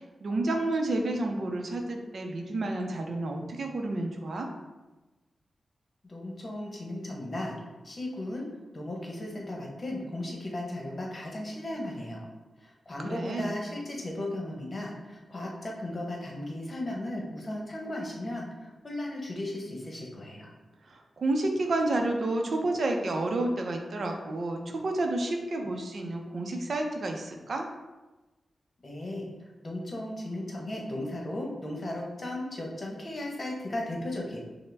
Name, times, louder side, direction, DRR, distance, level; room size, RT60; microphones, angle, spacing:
voice 1, 0.0-4.5 13.0-13.6 20.9-27.7, right 2 dB, 65° right, 3 dB, 0.6 m, -30 dB
voice 2, 6.0-7.6 7.8-12.3 12.6-20.5 28.8-29.3 29.6-34.4, left 1 dB, 40° left, -1 dB, 1.0 m, -36 dB
5.6 x 2.1 x 3.4 m, 1.1 s
cardioid pair, 75°, 0 cm